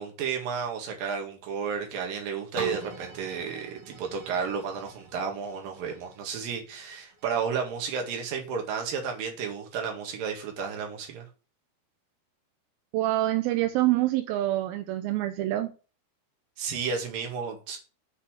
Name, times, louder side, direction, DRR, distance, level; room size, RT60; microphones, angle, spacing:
voice 1, 0.0-11.3 16.6-17.8, right 6 dB, 65° right, 3.4 m, -32 dB
sound 1, 2.6-8.3 8.9-9.0, right 5 dB, 45° right, 2.7 m, -42 dB
voice 2, 12.9-15.7, right 15 dB, 80° right, 2.4 m, -26 dB
8.4 x 5.5 x 5.9 m
omnidirectional pair, 4.5 m